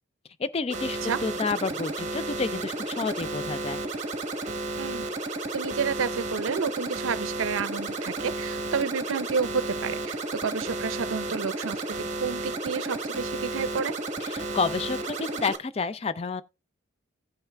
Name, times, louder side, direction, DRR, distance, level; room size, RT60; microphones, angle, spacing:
voice 1, 0.4-3.8 14.2-16.4, left 4 dB, 30° left, 0.4 m, -30 dB
sound 1, 0.7-15.6, right 2 dB, 35° right, 1.0 m, -32 dB
voice 2, 4.8-5.1 5.5-14.0, right 5 dB, 85° right, 0.5 m, -30 dB
16.0 x 5.7 x 2.3 m
head